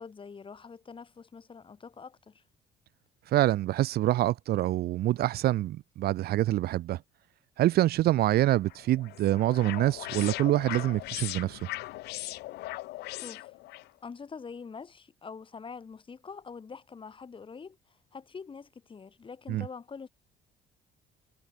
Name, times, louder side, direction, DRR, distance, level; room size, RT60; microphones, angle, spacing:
voice 1, 0.0-2.4 13.1-13.5 14.0-20.1, left 5 dB, 30° left, 5.7 m, -45 dB
voice 2, 3.3-7.0 7.6-11.7 19.5-19.7, right 14 dB, 70° right, 1.0 m, -26 dB
sound 1, 8.7-13.9, left 18 dB, 75° left, 0.5 m, -39 dB
cardioid pair, 110°, 17 cm